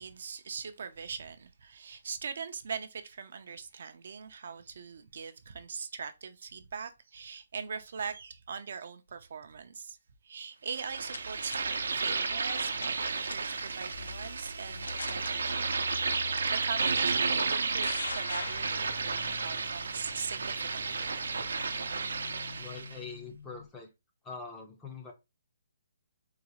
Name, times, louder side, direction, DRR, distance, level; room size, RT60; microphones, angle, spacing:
voice 1, 0.0-10.0 10.2-15.7 16.0-21.1, right 6 dB, 50° right, 0.4 m, -41 dB
sound 1, 10.7-11.6 12.6-13.0 13.3-13.6 14.3-14.4 14.8-15.3 16.4-16.5 17.4-19.2, left 4 dB, 90° left, 0.5 m, -40 dB
sound 2, 10.7-23.0, right 4 dB, 90° right, 0.6 m, -32 dB
sound 3, 13.9-23.7, left 3 dB, 60° left, 0.8 m, -47 dB
voice 2, 22.6-23.9 24.2-25.1, left 4 dB, 5° left, 0.4 m, -44 dB
3.8 x 2.3 x 2.9 m
hypercardioid pair, 175°, 0 cm